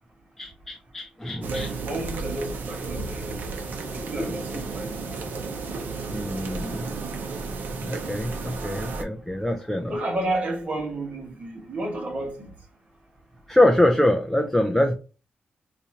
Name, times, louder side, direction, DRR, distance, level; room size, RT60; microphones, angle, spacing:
voice 1, 0.4-1.7 4.2-4.3 6.1-6.9 7.8-9.9 13.5-15.0, left 1 dB, 5° left, 0.4 m, -24 dB
sound 1, 1.4-9.0, right 4 dB, 70° right, 0.7 m, -33 dB
voice 2, 1.5-3.4 3.9-5.2 9.9-12.6, right 1 dB, 45° right, 1.4 m, -31 dB
3.9 x 2.5 x 2.8 m
wide cardioid pair, 120°, 3 cm